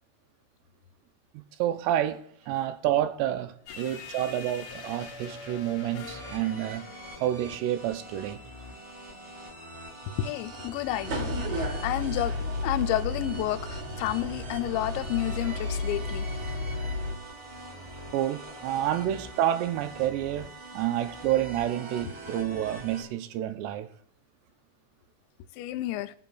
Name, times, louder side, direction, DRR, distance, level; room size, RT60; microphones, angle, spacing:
voice 1, 1.3-2.2 2.5-6.9 7.2-8.4 18.1-20.5 20.7-23.9, right 12 dB, 80° right, 2.7 m, -29 dB
sound 1, 3.7-8.0, left 4 dB, 60° left, 2.1 m, -44 dB
sound 2, 6.0-23.0, right 1 dB, 35° right, 2.4 m, -44 dB
voice 2, 10.1-12.4 12.6-16.3 25.6-26.1, left 14 dB, 90° left, 2.8 m, -30 dB
sound 3, 11.0-17.1, left 2 dB, 60° right, 4.0 m, -32 dB
20.5 x 7.8 x 2.3 m
omnidirectional pair, 5.1 m